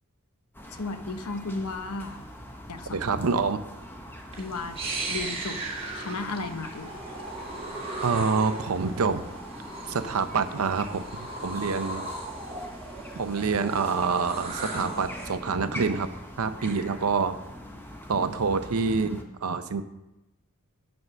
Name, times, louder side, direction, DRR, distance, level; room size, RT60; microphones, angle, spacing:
sound 1, 0.5-19.2, left 1 dB, 10° left, 0.9 m, -43 dB
voice 1, 0.7-2.3 2.7-3.0 4.4-4.8 5.1-5.6 5.9-7.0, left 3 dB, 90° left, 9 dB, 0.8 m, -34 dB
voice 2, 2.9-3.6 8.0-9.2 9.9-12.1 13.1-16.1 16.4-17.4 18.1-19.8, right 5 dB, 75° right, 10 dB, 0.6 m, -27 dB
sound 2, 4.3-15.3, right 2 dB, 25° right, 1.6 m, -37 dB
9.8 x 4.7 x 6.3 m, 0.97 s
head